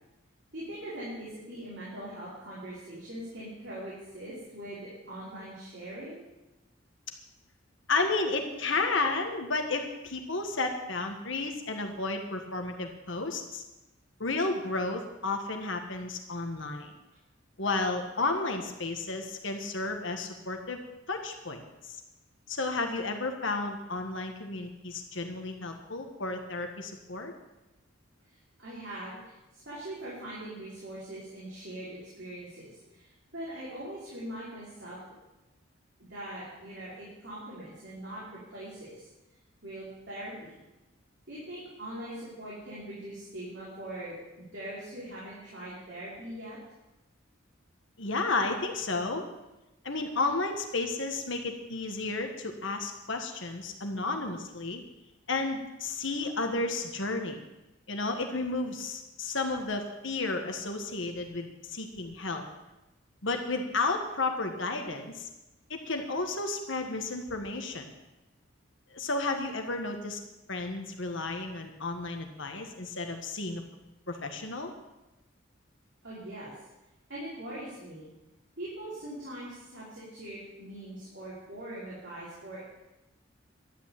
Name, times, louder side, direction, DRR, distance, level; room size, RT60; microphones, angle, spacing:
voice 1, 0.5-6.2 28.6-35.0 36.1-39.1 39.6-40.6 41.3-44.2 44.5-46.6 76.0-76.5 77.1-78.1 78.6-82.6, right 1 dB, 55° right, -9 dB, 5.3 m, -42 dB
voice 2, 7.9-13.6 14.2-16.9 17.6-20.8 21.1-21.6 21.9-22.0 22.5-27.3 48.0-49.2 49.8-54.8 55.3-57.4 57.9-62.4 63.2-65.3 65.7-67.9 68.9-70.2 70.5-73.6 74.1-74.7, left 3 dB, 65° left, 4 dB, 1.6 m, -32 dB
12.5 x 9.2 x 9.0 m, 1.0 s
head